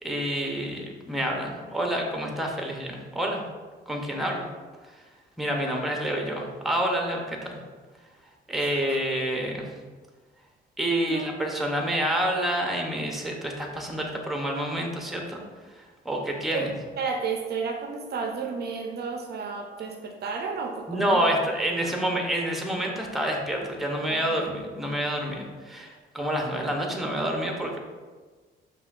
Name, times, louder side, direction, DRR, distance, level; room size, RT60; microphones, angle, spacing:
voice 1, 0.0-3.4 3.9-4.4 5.4-7.6 8.5-9.7 10.8-15.4 16.0-16.7 20.9-27.8, right 1 dB, ahead, 1 dB, 0.6 m, -28 dB
voice 2, 8.5-9.0 11.1-11.3 16.5-16.7 17.0-21.4 21.7-21.9 24.1-24.5, right 5 dB, 55° right, 3 dB, 0.4 m, -32 dB
5.4 x 2.3 x 2.4 m, 1.4 s
cardioid pair, 90°, 20 cm